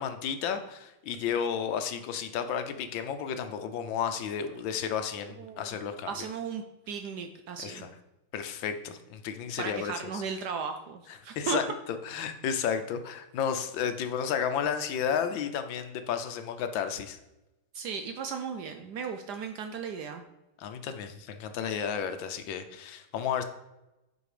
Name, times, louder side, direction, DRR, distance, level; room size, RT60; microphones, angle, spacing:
voice 1, 0.0-6.1 7.6-7.9 8.3-10.2 11.4-17.2 20.6-23.4, left 7 dB, 75° left, 8 dB, 1.4 m, -32 dB
voice 2, 5.4-5.8 6.1-7.9 9.6-11.6 17.7-20.2, right 6 dB, 70° right, 6 dB, 1.0 m, -36 dB
7.9 x 5.1 x 4.9 m, 0.96 s
omnidirectional pair, 2.2 m